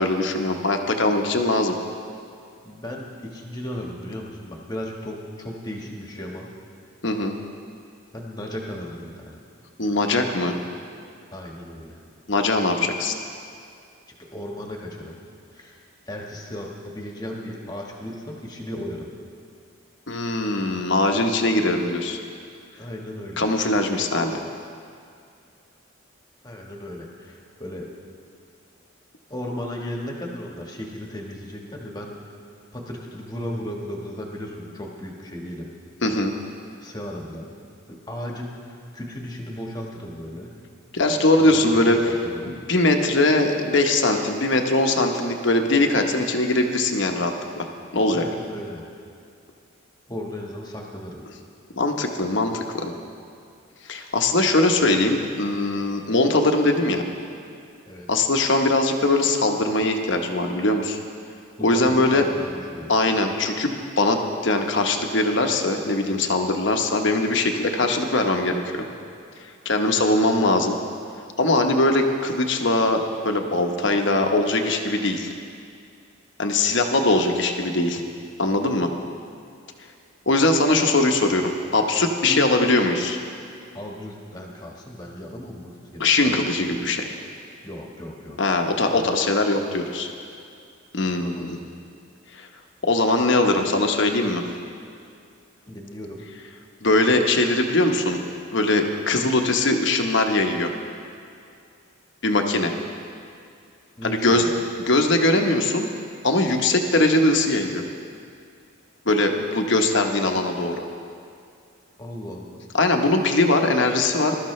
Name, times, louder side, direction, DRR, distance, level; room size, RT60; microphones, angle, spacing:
voice 1, 0.0-1.7 7.0-7.3 9.8-10.6 12.3-13.1 20.1-22.2 23.4-24.4 36.0-36.3 40.9-42.0 42.5-47.7 47.9-48.2 51.8-52.9 53.9-57.0 58.1-61.0 61.6-62.3 62.9-68.9 69.6-70.8 71.4-75.3 76.4-78.0 78.4-78.9 80.3-83.2 86.0-87.1 88.4-90.1 90.9-91.6 92.3-92.5 92.8-94.4 96.8-98.2 98.5-100.7 102.2-102.7 104.0-104.5 104.9-105.9 106.2-107.8 109.1-110.8 112.7-114.4, left 2 dB, 60° left, 4 dB, 1.0 m, -21 dB
voice 2, 2.6-6.5 8.1-9.4 11.3-12.0 14.2-15.2 15.5-19.1 22.8-23.5 26.4-27.9 29.3-32.1 32.7-35.7 36.8-37.5 37.9-40.5 41.4-42.5 48.1-48.8 50.1-51.2 53.9-54.1 57.9-58.1 61.6-62.9 82.3-82.5 83.7-86.4 86.6-86.9 87.6-88.4 88.9-89.1 91.1-91.7 95.7-96.3 98.6-98.7 104.0-104.6 112.0-112.6, left 1 dB, 20° left, -1 dB, 1.4 m, -35 dB
21.0 x 13.0 x 3.2 m, 2.4 s
head